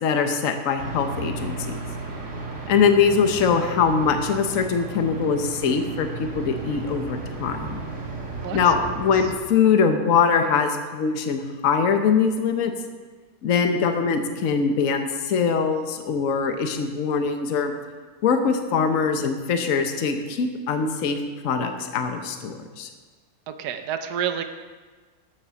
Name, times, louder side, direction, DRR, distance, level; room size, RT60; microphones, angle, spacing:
voice 1, 0.0-1.8 2.7-6.1 6.3-7.8 8.5-12.7 13.4-17.7 18.2-21.2 21.4-22.9, left 6 dB, 60° left, 6 dB, 1.3 m, -22 dB
sound 1, 0.8-9.3, right 3 dB, 50° right, 2.1 m, -34 dB
voice 2, 23.5-24.4, right 9 dB, 90° right, 8 dB, 1.3 m, -28 dB
12.0 x 7.6 x 6.9 m, 1.4 s
omnidirectional pair, 1.6 m